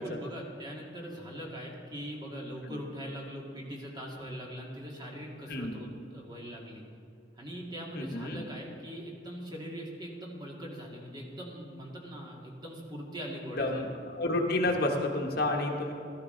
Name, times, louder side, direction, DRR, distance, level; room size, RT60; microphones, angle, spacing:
voice 1, 0.0-6.8 7.4-13.9, equal, 25° right, -2 dB, 2.2 m, -41 dB
voice 2, 5.5-5.8 7.9-8.4 13.6-15.9, left 2 dB, 60° left, 2 dB, 1.3 m, -30 dB
15.0 x 13.0 x 3.9 m, 2.7 s
head